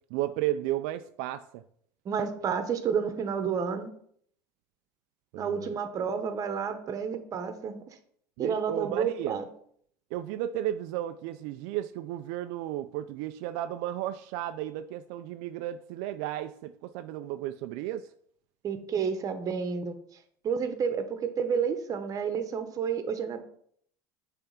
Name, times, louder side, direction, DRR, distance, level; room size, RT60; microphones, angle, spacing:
voice 1, 0.1-1.6 5.3-5.7 8.4-9.4 10.1-18.1, right 13 dB, 75° right, 9 dB, 0.3 m, -34 dB
voice 2, 2.0-3.9 5.3-7.8 8.4-9.5 18.6-19.9 20.4-23.5, right 6 dB, 40° right, 9 dB, 1.0 m, -30 dB
7.0 x 3.4 x 5.6 m, 0.64 s
supercardioid pair, 110°, 9 cm